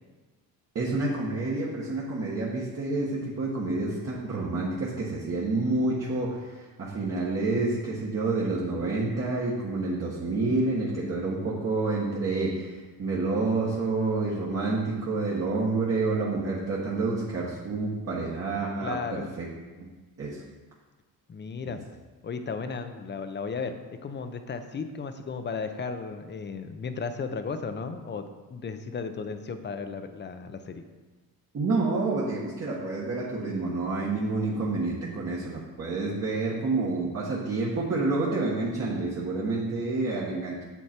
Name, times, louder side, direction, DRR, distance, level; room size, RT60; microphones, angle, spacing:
voice 1, 0.7-19.5 20.2-20.4 31.5-40.6, right 3 dB, 40° right, -5 dB, 1.5 m, -28 dB
voice 2, 18.8-19.3 21.3-21.8 22.2-30.8, left 5 dB, 30° left, 8 dB, 0.7 m, -35 dB
8.1 x 7.2 x 4.4 m, 1.3 s
cardioid pair, 115°, 38 cm